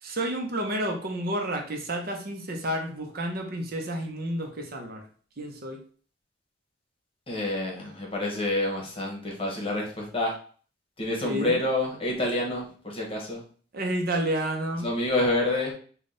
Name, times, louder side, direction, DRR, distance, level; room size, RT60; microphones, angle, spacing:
voice 1, 0.0-5.0 5.4-5.8 11.2-11.6 13.7-14.9, right 1 dB, 55° right, 3 dB, 0.7 m, -30 dB
voice 2, 7.3-10.3 11.0-13.4 14.8-15.7, left 2 dB, 30° left, -1 dB, 1.1 m, -28 dB
3.7 x 2.3 x 3.8 m, 0.43 s
head